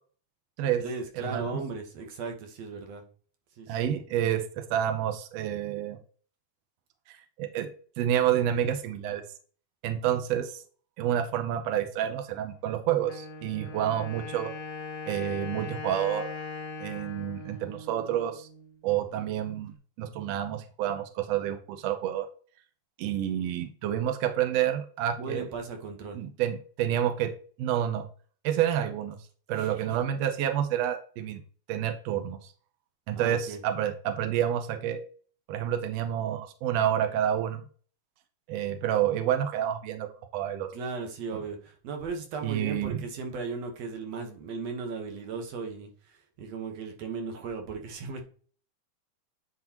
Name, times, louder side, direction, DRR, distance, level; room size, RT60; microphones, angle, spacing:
voice 1, 0.8-3.0 3.6-3.9 25.2-26.2 29.5-30.0 33.1-33.6 40.7-48.2, right 4 dB, 60° right, 3 dB, 2.1 m, -37 dB
voice 2, 3.7-6.0 7.1-7.7 8.0-9.2 9.8-10.6 11.0-14.5 15.1-16.3 16.8-18.5 18.8-19.7 20.0-22.3 23.0-25.5 26.2-27.3 27.6-28.1 28.4-29.2 29.5-31.4 31.7-32.5 33.1-35.0 35.5-37.6 38.5-40.1 40.3-40.7 42.4-43.0, right 10 dB, 80° right, 7 dB, 1.4 m, -29 dB
Wind instrument woodwind instrument, 13.0-18.7, left 4 dB, 60° left, 0.8 m, -40 dB
9.4 x 4.6 x 2.9 m, 0.43 s
omnidirectional pair, 3.8 m